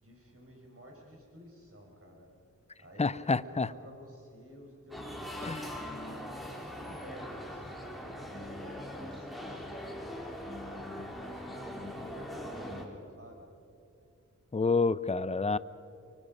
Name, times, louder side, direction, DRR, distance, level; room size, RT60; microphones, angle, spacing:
voice 1, 0.0-2.3 2.8-5.6 6.4-10.2 11.2-13.5, equal, 45° right, 0 dB, 5.2 m, -52 dB
voice 2, 3.0-3.7 5.4-5.7 14.5-15.6, left 4 dB, 20° left, 16 dB, 0.6 m, -28 dB
sound 1, 4.9-12.9, equal, ahead, 3.4 m, -41 dB
24.5 x 24.5 x 5.3 m, 2.6 s
wide cardioid pair, 70°, 31 cm